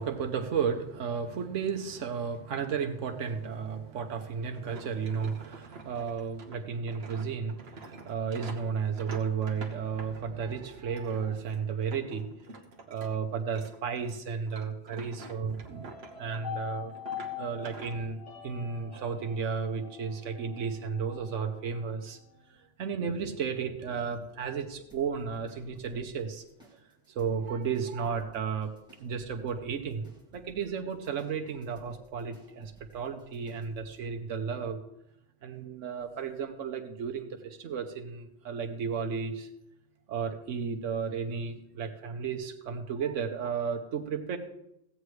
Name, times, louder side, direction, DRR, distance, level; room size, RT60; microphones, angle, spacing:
voice 1, 0.0-12.4 12.9-15.9 16.1-16.9 17.4-22.2 22.8-26.4 27.1-28.7 29.0-34.8 35.4-39.5 40.1-44.4, right 6 dB, 85° right, 5 dB, 1.3 m, -33 dB
sound 1, 4.5-10.5 11.0-13.2 13.4-16.6 16.9-17.9, right 3 dB, 60° right, 1.4 m, -48 dB
sound 2, 15.7-22.0 22.3-22.4, left 8 dB, 75° left, 3.5 m, -43 dB
sound 3, 24.9-34.0, equal, 5° right, 2.2 m, -60 dB
16.0 x 8.1 x 3.2 m, 0.82 s
omnidirectional pair, 1.2 m